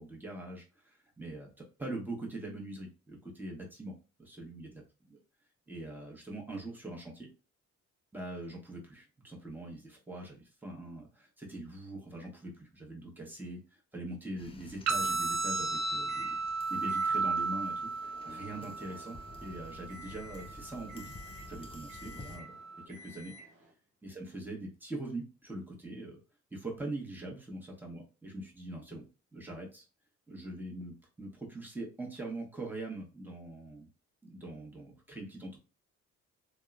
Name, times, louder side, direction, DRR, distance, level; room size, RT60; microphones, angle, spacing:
voice 1, 0.0-3.9 4.2-5.2 5.7-7.3 8.1-16.4 16.7-21.2 21.5-22.6 22.9-23.3 24.0-26.2 26.5-29.0 29.3-29.8 30.3-33.9 34.2-35.6, right 2 dB, 5° right, -1 dB, 0.9 m, -43 dB
sound 1, 14.4-22.4, left 2 dB, 20° left, 0.4 m, -52 dB
sound 2, 14.9-22.9, right 4 dB, 60° right, 0.5 m, -35 dB
Microwave oven, 16.1-16.4 16.9-23.7, left 2 dB, 80° right, 0.9 m, -53 dB
2.8 x 2.0 x 2.3 m, 0.33 s
cardioid pair, 90°, 30 cm